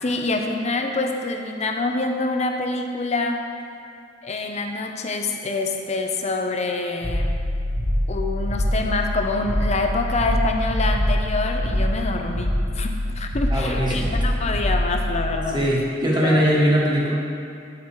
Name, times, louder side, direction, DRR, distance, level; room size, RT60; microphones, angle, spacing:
voice 1, 0.0-3.4 4.2-7.4 8.1-15.6 16.2-16.4, left 3 dB, 35° left, 3 dB, 0.7 m, -26 dB
sound 1, 7.0-16.1, left 1 dB, 55° left, 1.8 m, -24 dB
voice 2, 13.5-14.2 15.5-17.1, equal, 25° right, -5 dB, 1.5 m, -21 dB
9.1 x 5.8 x 4.8 m, 2.5 s
head